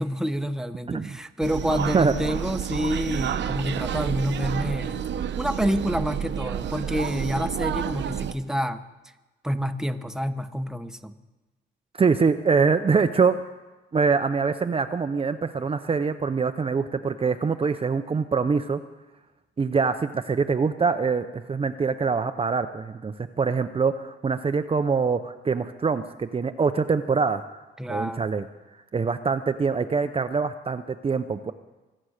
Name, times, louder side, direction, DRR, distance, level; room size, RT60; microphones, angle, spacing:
voice 1, 0.0-5.0 5.4-8.8 9.4-11.1 27.8-28.3, equal, 5° right, 9 dB, 1.0 m, -28 dB
sound 1, 1.4-8.3, right 9 dB, 65° right, 1.0 m, -29 dB
voice 2, 11.9-13.4 13.9-18.8 19.6-27.4 27.9-28.5 28.9-31.5, right 5 dB, 30° right, 9 dB, 0.7 m, -24 dB
24.0 x 8.7 x 6.5 m, 1.1 s
cardioid pair, 90°, 20 cm